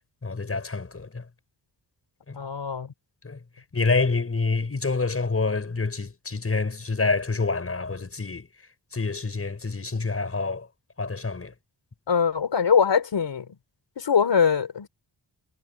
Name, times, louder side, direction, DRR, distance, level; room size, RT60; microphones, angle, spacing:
voice 1, 0.2-1.2 2.3-2.4 3.2-3.4 3.7-8.5 8.9-10.7 11.0-11.5, left 3 dB, 30° left, 5.7 m, -27 dB
voice 2, 2.4-2.9 12.1-13.5 14.0-14.9, left 6 dB, 70° left, 4.0 m, -22 dB
wide cardioid pair, 175°, 44 cm